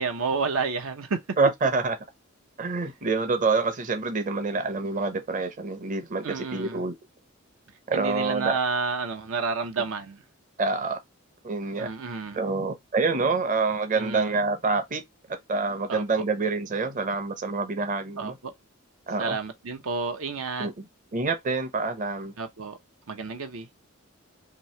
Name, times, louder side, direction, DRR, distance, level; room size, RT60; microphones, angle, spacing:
voice 1, 0.0-1.2 6.2-6.8 7.9-10.2 11.8-12.4 13.9-14.4 15.9-16.0 18.2-18.3 19.2-20.7 22.4-22.8 23.1-23.7, right 4 dB, 80° right, 0.7 m, -30 dB
voice 2, 1.4-2.0 2.6-6.9 7.9-8.6 10.6-11.0 11.4-11.9 12.3-15.0 15.5-18.4 19.1-19.4 20.6-20.8 21.1-22.3, right 4 dB, 40° right, 0.7 m, -26 dB
3.0 x 2.8 x 4.2 m
head